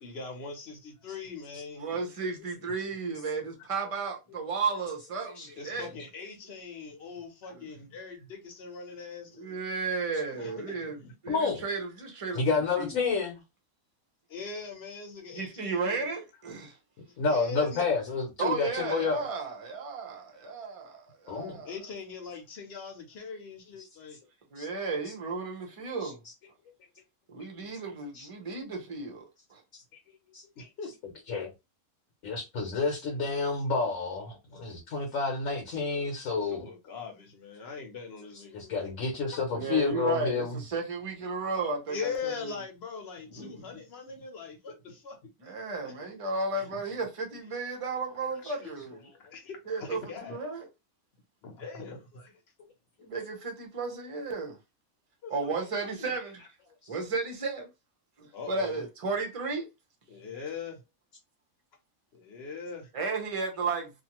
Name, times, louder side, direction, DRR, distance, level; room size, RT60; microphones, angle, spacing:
voice 1, 0.0-1.9 5.5-9.6 10.3-11.1 14.3-16.0 17.3-17.8 21.6-24.2 30.6-30.9 36.5-38.9 39.3-39.7 41.9-45.2 45.8-45.9 46.5-46.8 49.3-50.4 51.4-52.3 55.2-56.1 58.3-58.8 60.1-60.8 62.1-62.9, left 5 dB, 50° left, 1.0 m, -41 dB
voice 2, 1.7-5.9 7.5-7.6 9.3-12.4 12.8-12.9 15.3-16.8 18.4-21.7 24.5-26.2 27.3-29.2 29.5-29.6 39.5-42.6 43.4-43.5 45.4-49.0 49.7-50.7 53.0-54.6 55.3-56.4 56.9-57.7 58.2-59.7 62.9-63.9, right 4 dB, 35° right, 0.6 m, -34 dB
voice 3, 11.3-11.6 12.3-13.4 17.2-19.3 21.3-21.6 23.8-23.9 24.6-24.7 25.0-25.1 26.0-26.1 27.4-27.5 28.1-28.3 30.3-30.7 31.3-31.5 32.2-36.6 38.5-40.6 48.4-48.5, left 4 dB, 70° left, 1.2 m, -30 dB
2.6 x 2.5 x 2.9 m
omnidirectional pair, 1.5 m